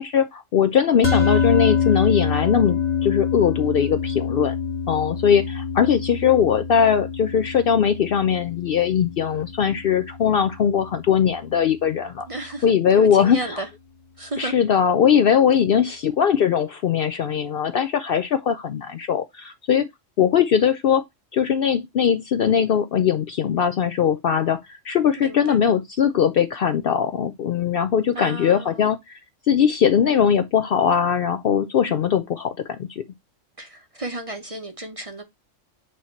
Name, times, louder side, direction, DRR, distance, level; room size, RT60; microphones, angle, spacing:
voice 1, 0.0-4.5 4.9-12.3 12.6-13.6 14.4-19.9 20.2-21.0 21.3-29.2 29.5-32.9, left 8 dB, 60° left, 0.6 m, -20 dB
sound 1, 1.0-11.5, left 6 dB, 35° left, 1.3 m, -26 dB
voice 2, 12.3-12.7 12.9-13.7 14.2-14.5 25.2-25.6 28.1-29.0 33.6-35.2, right 1 dB, 35° right, 0.7 m, -33 dB
8.2 x 2.9 x 4.3 m
omnidirectional pair, 1.3 m